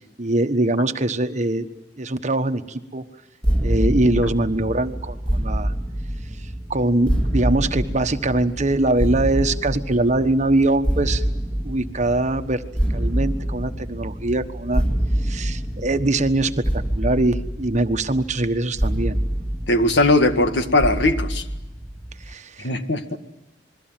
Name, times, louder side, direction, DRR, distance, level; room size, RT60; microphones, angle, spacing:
voice 1, 0.2-1.7 2.0-3.0 3.6-5.7 6.7-11.2 11.6-12.6 12.9-14.8 15.2-19.2 22.3-22.7 23.1-23.2, right 2 dB, 40° right, 9 dB, 1.3 m, -22 dB
sound 1, 3.4-22.3, right 1 dB, 5° left, 2.0 m, -26 dB
voice 2, 19.7-21.4 22.6-23.2, left 2 dB, 70° left, 8 dB, 1.9 m, -19 dB
28.0 x 22.0 x 7.6 m, 0.97 s
head